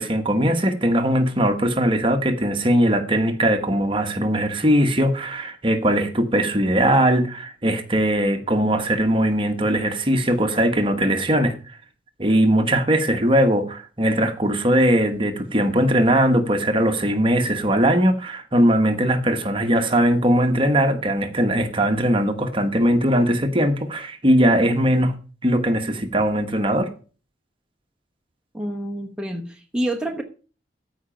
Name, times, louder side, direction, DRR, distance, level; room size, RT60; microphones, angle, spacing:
voice 1, 0.0-11.6 12.2-25.1 25.4-26.9, right 1 dB, 30° right, 1.3 m, -20 dB
voice 2, 28.5-30.2, right 1 dB, 5° right, 0.9 m, -28 dB
14.0 x 5.1 x 5.7 m
head